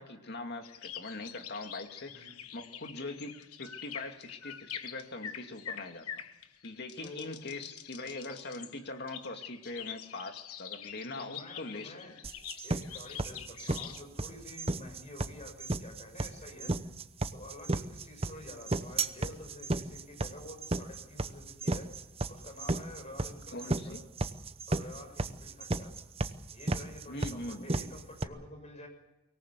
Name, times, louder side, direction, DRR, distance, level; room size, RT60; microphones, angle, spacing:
voice 1, 0.0-2.3 2.5-6.1 6.6-12.0 23.5-24.0 27.1-27.7, left 2 dB, 50° left, 5 dB, 2.4 m, -42 dB
sound 1, 0.6-14.0, left 9 dB, 85° left, 1.3 m, -46 dB
voice 2, 7.0-7.3 11.2-12.1 12.6-16.7 17.3-21.9 22.3-24.0 24.7-25.9 26.5-28.9, left 1 dB, 30° left, 4 dB, 6.2 m, -49 dB
sound 2, 12.2-28.2, right 2 dB, 25° right, 0.9 m, -33 dB
24.0 x 18.5 x 8.2 m, 0.97 s
head